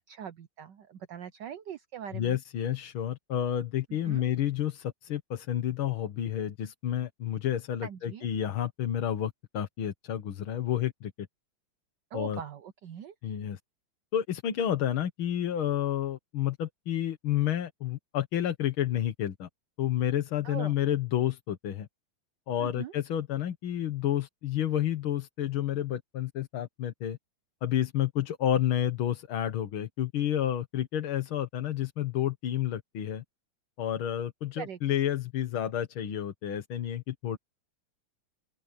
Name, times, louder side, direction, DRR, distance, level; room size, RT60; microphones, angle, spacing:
voice 1, 0.1-2.4 4.0-4.2 7.8-8.3 12.1-13.1 20.4-20.7 22.6-22.9 34.6-34.8, right 9 dB, 65° right, 1.3 m, -41 dB
voice 2, 2.1-11.1 12.1-12.4 13.2-13.6 14.1-19.5 19.8-21.9 22.5-27.2 27.6-33.2 33.8-37.4, left 11 dB, 75° left, 2.1 m, -30 dB
open air
omnidirectional pair, 2.3 m